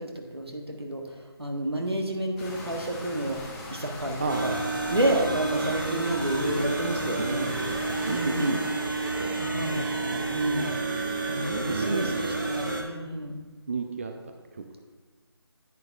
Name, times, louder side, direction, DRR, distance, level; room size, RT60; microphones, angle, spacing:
voice 1, 0.0-4.6 4.9-7.5 8.1-8.6 9.4-10.7 11.3-13.4, right 1 dB, 85° right, 2 dB, 1.5 m, -30 dB
sound 1, 2.4-8.8, left 2 dB, 5° left, 0.6 m, -41 dB
voice 2, 4.2-4.5 7.2-7.3 7.5-7.7 8.0-8.6 9.2-9.3 9.6-9.9 11.4-12.3 13.7-14.6, right 3 dB, 35° right, 5 dB, 0.5 m, -32 dB
sound 2, 4.3-12.8, right 3 dB, 55° right, 1.3 m, -30 dB
10.5 x 8.8 x 2.4 m, 1.3 s
figure-of-eight pair, 155°, 13 cm